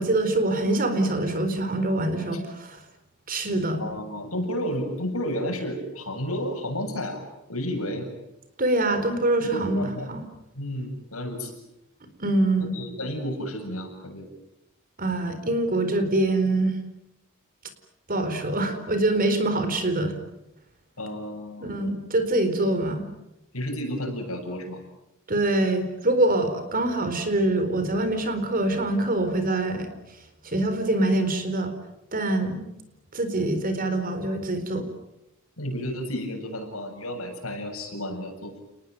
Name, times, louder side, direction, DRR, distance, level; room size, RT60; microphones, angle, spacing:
voice 1, 0.0-2.8 3.3-3.8 8.6-9.8 10.1-10.2 12.2-12.7 15.0-16.8 18.1-20.2 21.6-23.0 25.3-29.9 30.4-31.7 32.1-32.6 33.1-34.9, right 2 dB, 40° right, 9 dB, 4.3 m, -24 dB
voice 2, 3.8-7.2 7.5-8.1 9.4-10.1 10.5-11.6 12.6-14.3 21.0-21.8 23.5-24.8 35.6-38.6, equal, 80° left, 3 dB, 7.8 m, -32 dB
30.0 x 20.0 x 9.4 m, 0.88 s
head